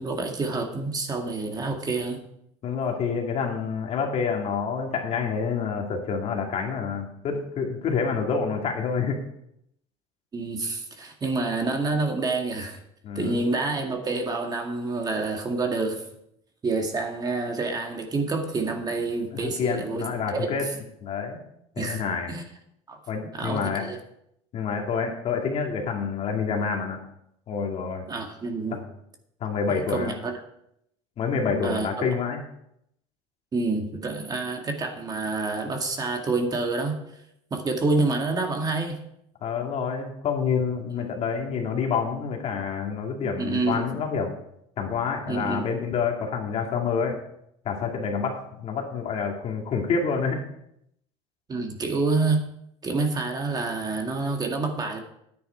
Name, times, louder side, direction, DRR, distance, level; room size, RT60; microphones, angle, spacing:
voice 1, 0.0-2.2 10.3-12.8 13.2-16.0 16.6-20.5 21.8-22.0 22.3-22.4 22.9-23.0 23.3-24.0 28.1-28.8 29.7-30.3 31.6-32.1 33.5-37.0 37.5-39.0 43.4-43.9 45.3-45.7 51.5-52.4 52.8-55.0, right 3 dB, 25° right, 3 dB, 2.0 m, -28 dB
voice 2, 2.6-9.2 13.0-13.4 19.4-20.7 21.0-21.4 21.8-22.3 23.1-23.9 24.5-27.0 27.5-28.0 29.4-30.1 31.2-32.4 39.4-44.4 44.8-47.2 47.6-50.4, left 5 dB, 45° left, 2 dB, 2.4 m, -28 dB
10.5 x 9.3 x 4.5 m, 0.75 s
supercardioid pair, 110°, 15 cm